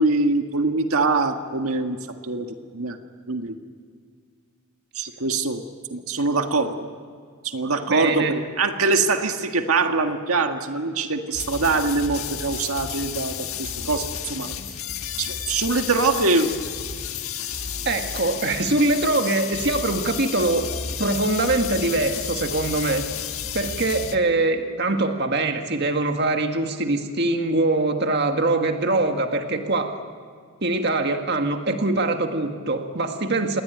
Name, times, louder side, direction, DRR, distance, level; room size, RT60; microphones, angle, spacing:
voice 1, 0.0-2.0 2.2-3.0 3.3-3.6 5.0-5.6 5.9-6.9 7.4-14.6 15.2-16.5, right 3 dB, 85° right, 5 dB, 1.7 m, -23 dB
voice 2, 7.9-8.4 17.9-20.7 21.0-23.0 23.5-30.0 30.6-33.6, right 2 dB, 50° right, 5 dB, 1.8 m, -23 dB
sound 1, 11.3-24.2, left 8 dB, 75° left, 1.5 m, -32 dB
28.0 x 21.0 x 9.2 m, 2.1 s
head